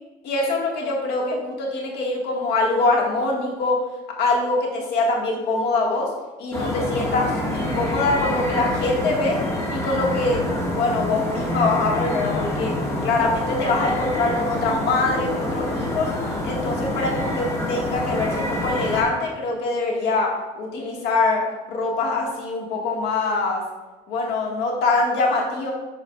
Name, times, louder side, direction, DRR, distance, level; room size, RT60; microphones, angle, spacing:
voice 1, 0.2-3.8 4.2-6.1 6.4-9.4 9.7-10.4 10.7-12.7 13.0-16.1 16.4-21.4 21.7-23.6 24.1-25.7, left 3 dB, 80° left, -1 dB, 1.7 m, -23 dB
sound 1, 6.5-19.0, left 1 dB, 15° left, 1.6 m, -26 dB
11.0 x 4.7 x 2.4 m, 1.2 s
cardioid pair, 110°, 17 cm